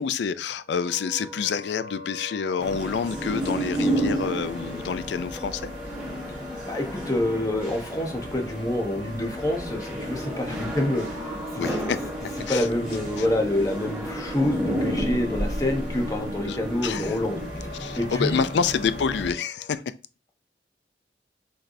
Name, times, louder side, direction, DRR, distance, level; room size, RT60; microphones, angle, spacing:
voice 1, 0.0-5.7 11.6-12.0 12.5-12.7 16.4-16.6 16.8-17.2 17.8-19.9, left 6 dB, 70° left, 0.4 m, -28 dB
Wind instrument woodwind instrument, 0.6-19.8, left 2 dB, 50° right, 2.6 m, -42 dB
sound 1, 2.6-19.3, equal, 10° right, 1.4 m, -32 dB
voice 2, 6.3-11.7 12.5-17.4 17.9-18.4, left 1 dB, 20° left, 0.8 m, -27 dB
sound 2, 10.0-17.5, equal, 80° right, 1.1 m, -38 dB
6.2 x 3.3 x 2.6 m
head